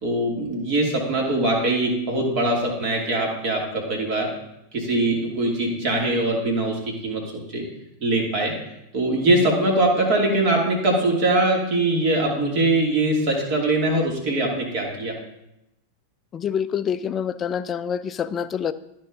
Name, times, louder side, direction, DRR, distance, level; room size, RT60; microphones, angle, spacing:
voice 1, 0.0-4.3 4.7-7.6 8.0-8.5 8.9-15.2, right 2 dB, 45° right, -1 dB, 2.6 m, -22 dB
voice 2, 16.3-18.7, left 8 dB, 25° left, 14 dB, 0.4 m, -26 dB
13.0 x 4.4 x 3.7 m, 0.88 s
figure-of-eight pair, 90°, 0 cm